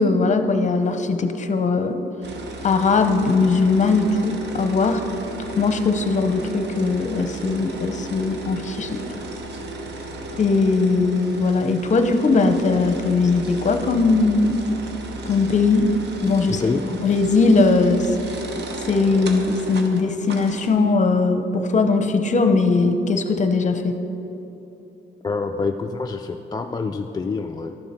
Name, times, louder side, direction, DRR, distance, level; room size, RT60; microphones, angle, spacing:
voice 1, 0.0-2.0 2.6-5.0 5.6-9.0 10.4-14.6 15.3-15.9 16.2-16.6 17.0-18.2 18.9-24.0, left 3 dB, 35° left, 8 dB, 0.8 m, -19 dB
sound 1, 2.2-20.7, right 2 dB, 60° right, 1.1 m, -35 dB
voice 2, 16.5-16.8 25.2-27.8, left 4 dB, 20° left, 4 dB, 0.3 m, -26 dB
11.5 x 7.2 x 4.3 m, 2.9 s
cardioid pair, 90°, 20 cm